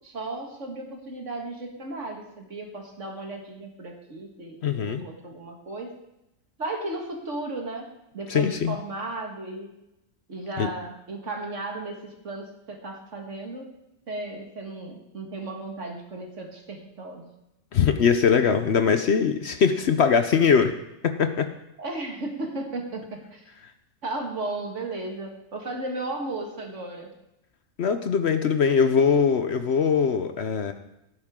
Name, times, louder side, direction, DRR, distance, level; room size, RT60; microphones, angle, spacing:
voice 1, 0.0-5.9 6.6-9.7 10.3-13.7 14.1-17.3 21.8-23.5 24.0-27.1, right 2 dB, 60° right, 1 dB, 2.2 m, -35 dB
voice 2, 4.6-5.0 8.3-8.7 10.6-10.7 17.7-20.7 21.0-21.5 27.8-30.7, left 6 dB, 60° left, 8 dB, 0.9 m, -21 dB
16.5 x 9.6 x 3.7 m, 0.89 s
omnidirectional pair, 1.4 m